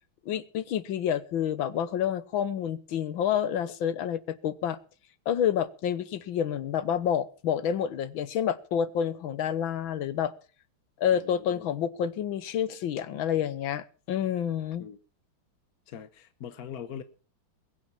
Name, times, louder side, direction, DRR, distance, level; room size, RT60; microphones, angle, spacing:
voice 1, 0.3-4.8 5.3-10.3 11.0-14.8, left 9 dB, 70° left, 1.7 m, -28 dB
voice 2, 11.1-11.8 14.8-15.0 15.9-17.0, left 8 dB, 55° left, 1.2 m, -42 dB
21.5 x 9.1 x 5.8 m
omnidirectional pair, 2.3 m